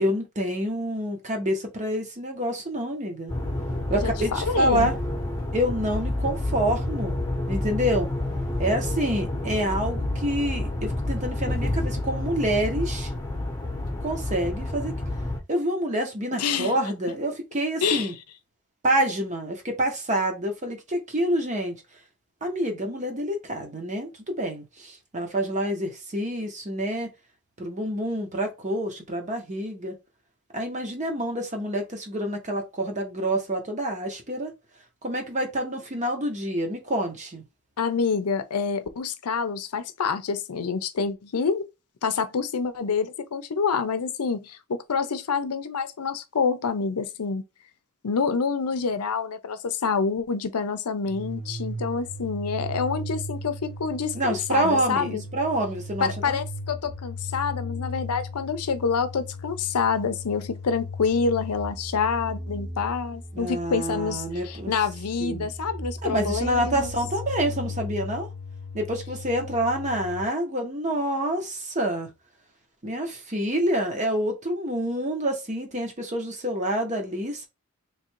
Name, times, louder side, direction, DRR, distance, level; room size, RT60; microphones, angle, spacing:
voice 1, 0.0-3.3 3.9-5.0 5.5-7.2 7.5-8.1 8.6-13.1 14.0-14.9 15.5-18.1 18.8-21.8 22.4-27.1 27.6-30.0 30.5-34.5 35.0-37.4 54.1-56.4 63.3-64.7 65.2-65.5 66.0-68.3 68.7-72.1 72.8-77.5, right 1 dB, 35° right, 1.0 m, -27 dB
sound 1, 3.3-15.4, left 1 dB, 15° left, 1.0 m, -29 dB
voice 2, 3.9-4.9 16.4-16.7 17.8-18.1 37.8-41.6 42.0-47.4 48.0-55.2 56.0-66.9, left 5 dB, 85° left, 0.6 m, -27 dB
sound 2, 51.1-70.2, left 1 dB, 60° right, 1.5 m, -36 dB
3.3 x 2.5 x 4.5 m
head